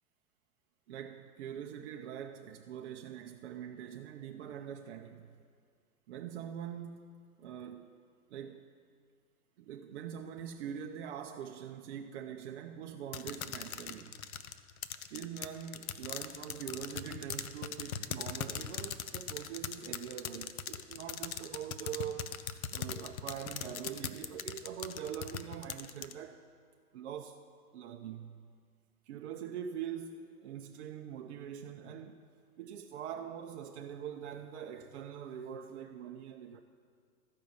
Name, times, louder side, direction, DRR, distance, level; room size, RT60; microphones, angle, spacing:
voice 1, 0.9-5.3 6.1-7.9 8.3-8.7 9.6-14.1 15.1-22.5 22.7-26.4 26.9-27.4 27.7-28.4 29.1-32.2 32.6-36.6, right 9 dB, 45° right, 0.6 m, -43 dB
sound 1, 13.1-26.1, left 9 dB, 65° left, 0.6 m, -40 dB
13.5 x 5.3 x 7.0 m
figure-of-eight pair, 95°, 47 cm